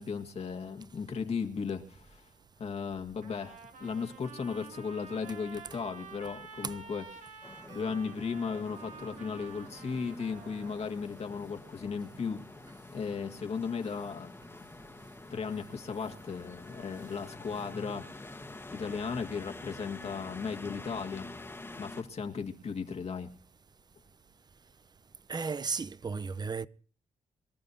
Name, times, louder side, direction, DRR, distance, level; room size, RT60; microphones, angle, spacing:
voice 1, 0.0-2.3 2.6-7.4 7.7-12.4 12.9-14.3 15.3-18.4 18.7-21.3 21.8-23.3, left 5 dB, 50° left, 1.8 m, -36 dB
Trumpet, 3.2-10.9, right 5 dB, 70° right, 2.4 m, -49 dB
sound 1, 7.4-22.0, left 2 dB, 15° left, 1.4 m, -47 dB
voice 2, 25.3-26.7, right 5 dB, 30° right, 0.7 m, -34 dB
25.0 x 13.5 x 2.7 m
cardioid pair, 85°, 13 cm